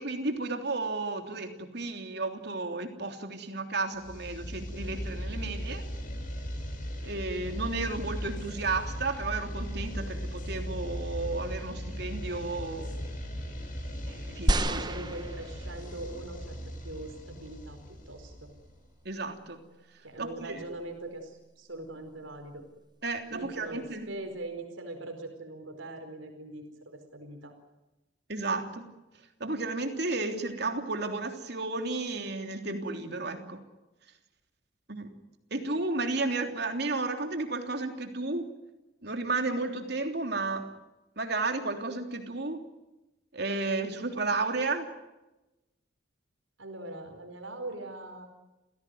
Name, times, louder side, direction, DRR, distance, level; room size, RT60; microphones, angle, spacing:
voice 1, 0.0-5.8 7.0-13.0 14.1-14.9 19.0-19.6 20.2-20.6 23.0-24.2 28.3-28.8 29.4-33.6 34.9-35.1 35.5-38.5 39.0-40.7 41.2-42.6 43.3-44.9, right 3 dB, 55° right, 5 dB, 3.3 m, -33 dB
sound 1, 4.0-18.8, equal, 45° left, 5.2 m, -38 dB
sound 2, 14.5-16.0 16.7-16.8, right 1 dB, 20° right, 1.1 m, -29 dB
voice 2, 14.6-17.8 18.1-18.5 20.0-22.6 23.3-27.5 46.6-48.3, right 2 dB, 85° right, 5 dB, 4.7 m, -41 dB
29.5 x 17.0 x 9.5 m, 1.0 s
head